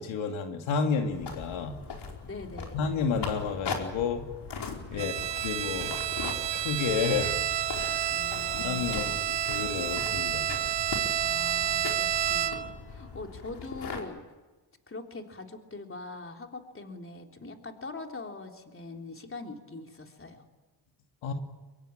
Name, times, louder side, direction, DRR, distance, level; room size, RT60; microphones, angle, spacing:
voice 1, 0.0-1.8 2.7-4.3 4.9-5.1 5.4-6.1 6.5-7.4 7.7-8.2 8.5-10.5 21.2-21.3, left 5 dB, 75° left, 4 dB, 2.6 m, -31 dB
sound 1, 1.1-14.0, left 5 dB, 60° left, 4.9 m, -40 dB
voice 2, 2.2-2.8 4.9-5.2 8.1-9.3 11.2-14.2 14.9-20.4, left 3 dB, 25° left, 3 dB, 3.6 m, -42 dB
Bowed string instrument, 5.0-12.8, right 11 dB, 65° right, 1.4 m, -30 dB
24.5 x 22.5 x 9.0 m, 1.2 s
cardioid pair, 75°, 47 cm